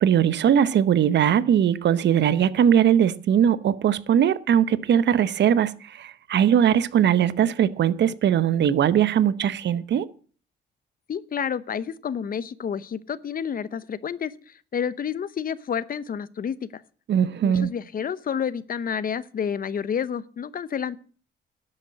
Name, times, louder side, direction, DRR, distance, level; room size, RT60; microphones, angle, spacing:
voice 1, 0.0-10.1 17.1-17.7, right 9 dB, 60° right, 0.9 m, -20 dB
voice 2, 11.1-16.8 17.4-21.0, left 7 dB, 45° left, 0.9 m, -30 dB
12.0 x 8.4 x 7.7 m
cardioid pair, 90°, 20 cm